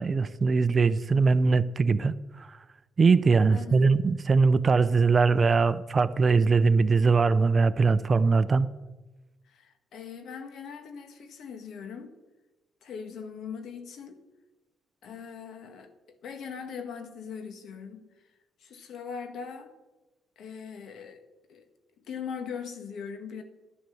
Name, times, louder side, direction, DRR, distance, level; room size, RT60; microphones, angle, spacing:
voice 1, 0.0-2.6 3.0-8.7, right 4 dB, 35° right, 0.6 m, -22 dB
voice 2, 3.5-4.0 9.4-12.2 12.8-14.3 15.0-15.9 16.2-18.1 18.6-19.7 20.4-21.2 21.5-21.7 22.1-23.4, left 6 dB, 70° left, 1.6 m, -40 dB
11.0 x 10.5 x 7.1 m
cardioid pair, 90°, 0 cm